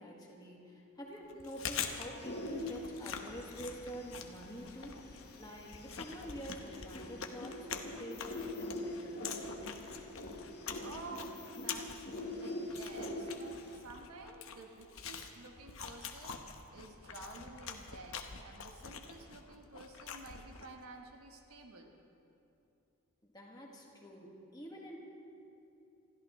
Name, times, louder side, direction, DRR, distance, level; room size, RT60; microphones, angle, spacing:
voice 1, 0.0-5.1 5.3-9.3 23.2-25.0, equal, 15° left, -2 dB, 1.8 m, -47 dB
Chewing mastication, 1.3-20.8, left 6 dB, 65° left, 1.0 m, -45 dB
sound 1, 2.2-13.8, left 1 dB, 45° left, 1.4 m, -44 dB
voice 2, 10.5-16.4 16.7-21.9, right 3 dB, 80° right, 2 dB, 1.3 m, -51 dB
27.0 x 14.0 x 3.2 m, 2.8 s
head